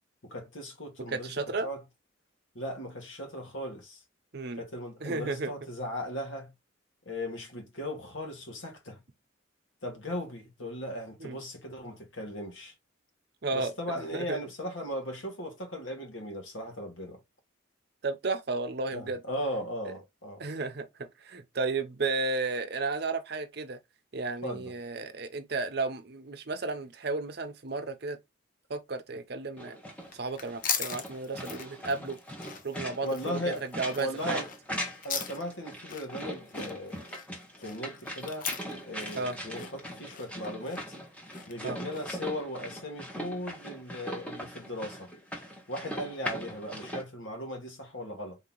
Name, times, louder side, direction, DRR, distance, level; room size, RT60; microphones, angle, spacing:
voice 1, 0.2-1.3 1.6-1.8 2.6-4.0 4.6-6.5 7.1-9.0 9.8-12.7 13.5-17.2 18.9-20.4 24.4-24.7 33.0-33.6 34.0-34.5 35.0-37.0 37.6-38.5 38.8-40.8 41.5-45.1 45.7-48.4, left 1 dB, 75° left, 1.6 m, -37 dB
voice 2, 1.1-1.7 4.3-4.6 5.0-5.5 11.2-11.4 13.4-13.7 14.1-14.4 18.0-19.2 19.9-20.0 20.4-23.8 24.1-28.2 28.7-29.8 30.1-32.2 32.6-34.4 39.2-39.4 41.6-41.8, right 3 dB, 50° right, 0.7 m, -33 dB
sound 1, 29.6-47.0, equal, 5° left, 1.1 m, -40 dB
sound 2, 30.0-42.3, left 7 dB, 40° left, 0.6 m, -40 dB
4.0 x 2.9 x 3.8 m
head